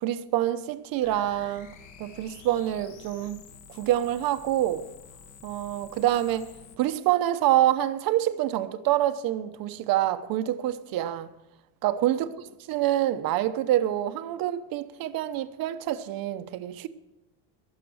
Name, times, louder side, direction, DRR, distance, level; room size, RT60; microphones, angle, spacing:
voice 1, 0.0-1.7 2.0-3.4 3.7-4.9 5.4-11.3 11.8-12.3 12.7-16.9, right 13 dB, 50° right, 1.0 m, -26 dB
sound 1, 1.0-6.8, left 6 dB, 40° left, 1.4 m, -50 dB
21.5 x 7.4 x 6.4 m
cardioid pair, 175°, 45 cm